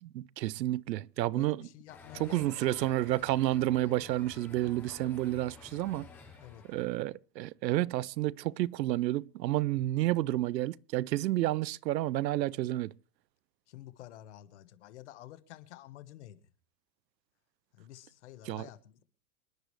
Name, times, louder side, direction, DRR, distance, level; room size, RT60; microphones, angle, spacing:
voice 1, 0.0-1.6 2.2-6.1 6.7-12.9 18.5-18.6, right 15 dB, 85° right, 0.7 m, -30 dB
voice 2, 1.3-2.9 6.4-6.6 13.7-16.5 17.7-19.0, left 13 dB, 45° left, 1.3 m, -50 dB
sound 1, 1.9-7.0, left 5 dB, 5° left, 0.6 m, -52 dB
27.5 x 10.5 x 3.2 m
supercardioid pair, 175°, 49 cm